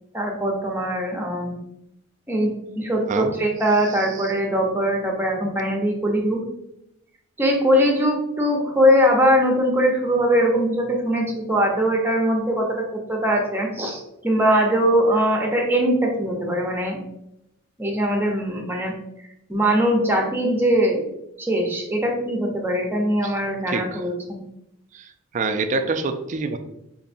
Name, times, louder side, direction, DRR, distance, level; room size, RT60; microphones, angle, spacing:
voice 1, 0.1-1.5 2.3-2.5 2.8-6.4 7.4-17.0 17.8-18.9 19.5-21.0 21.4-24.1, equal, 10° right, 1 dB, 0.7 m, -21 dB
voice 2, 3.9-4.3 23.2-23.3 23.7-24.0 24.9-26.6, right 4 dB, 35° right, 7 dB, 0.3 m, -27 dB
5.3 x 2.6 x 2.5 m, 0.84 s
head